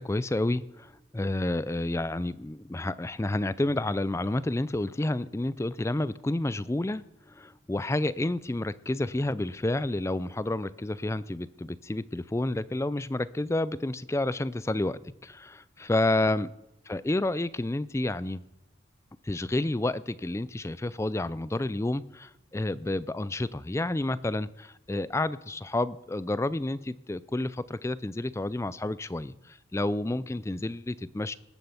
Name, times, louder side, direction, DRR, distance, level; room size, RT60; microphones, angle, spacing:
voice 1, 0.0-16.5 16.9-18.4 19.2-31.3, left 2 dB, 15° left, 17 dB, 0.4 m, -30 dB
19.0 x 7.6 x 7.1 m, 0.96 s
head